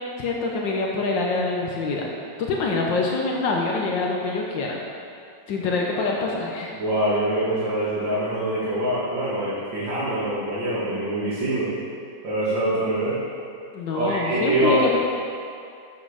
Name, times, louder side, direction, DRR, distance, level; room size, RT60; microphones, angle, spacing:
voice 1, 0.2-2.1 2.4-4.8 5.5-6.7 13.7-15.0, left 3 dB, 80° left, -1 dB, 1.7 m, -25 dB
voice 2, 6.7-11.7 12.2-13.2 13.9-14.8, right 1 dB, 80° right, -11 dB, 3.0 m, -24 dB
12.5 x 7.4 x 5.0 m, 2.4 s
omnidirectional pair, 2.0 m